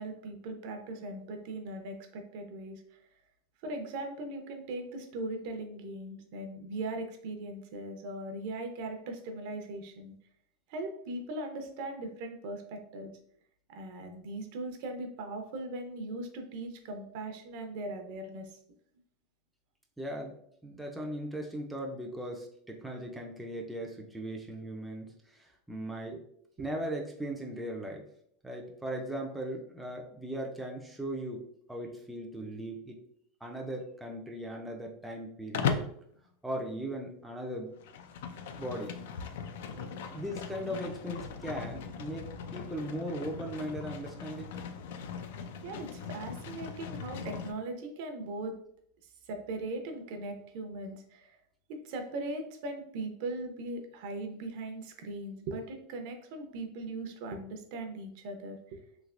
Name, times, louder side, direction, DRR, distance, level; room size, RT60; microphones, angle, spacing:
voice 1, 0.0-3.0 3.6-10.1 10.7-13.1 13.7-18.6 26.1-26.2 39.7-40.0 45.6-48.6 49.3-51.4 51.7-58.8, right 2 dB, 60° right, 5 dB, 0.5 m, -39 dB
voice 2, 20.0-20.3 20.6-26.2 26.6-28.0 28.4-31.4 31.7-33.0 33.4-35.9 36.4-37.7 38.6-39.0 40.1-44.5, right 1 dB, 5° right, -1 dB, 0.4 m, -38 dB
Livestock farm animals working animals, 35.5-36.0 37.7-47.5, left 6 dB, 80° left, 0.3 m, -38 dB
3.2 x 2.8 x 2.4 m, 0.66 s
supercardioid pair, 155°, 0 cm